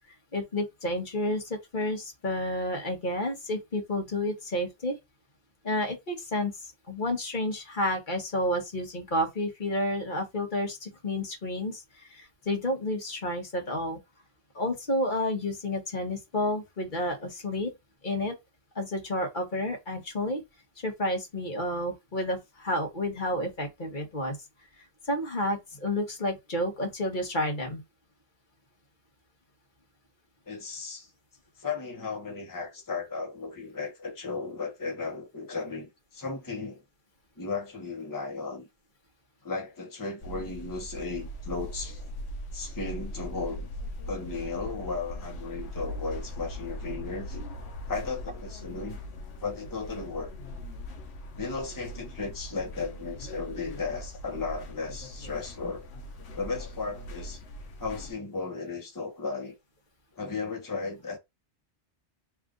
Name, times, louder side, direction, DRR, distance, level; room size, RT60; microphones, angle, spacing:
voice 1, 0.3-5.0 5.6-6.5 6.9-14.0 14.5-17.7 18.0-18.3 18.7-20.4 20.8-24.4 25.1-27.8, left 1 dB, 45° left, 1.4 m, -30 dB
voice 2, 30.5-31.1 31.6-36.8 37.4-38.7 39.4-42.0 42.5-43.7 44.1-47.4 47.9-49.0 49.4-50.3 51.4-55.9 56.3-57.4 57.8-59.6 60.2-61.2, left 4 dB, 20° left, 0.9 m, -35 dB
sound 1, 40.2-58.1, equal, 65° left, 1.0 m, -40 dB
3.4 x 2.5 x 3.7 m
omnidirectional pair, 1.2 m